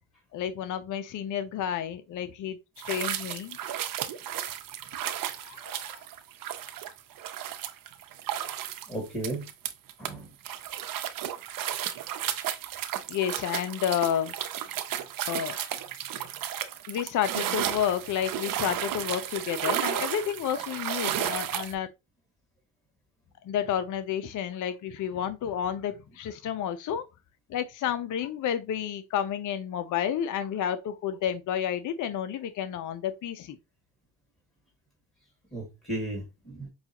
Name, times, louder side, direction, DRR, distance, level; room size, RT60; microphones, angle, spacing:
voice 1, 0.3-2.6 2.8-3.6 5.1-6.0 13.1-14.4 15.3-15.6 16.9-21.9 23.4-27.0 27.5-33.6, left 9 dB, 50° left, 0.5 m, -30 dB
sound 1, 2.8-10.1 10.4-21.7, right 11 dB, 60° right, 0.7 m, -33 dB
voice 2, 8.9-9.5 10.0-10.3 35.5-36.7, right 1 dB, 15° left, 2.0 m, -35 dB
5.4 x 2.3 x 2.8 m
cardioid pair, 80°, 38 cm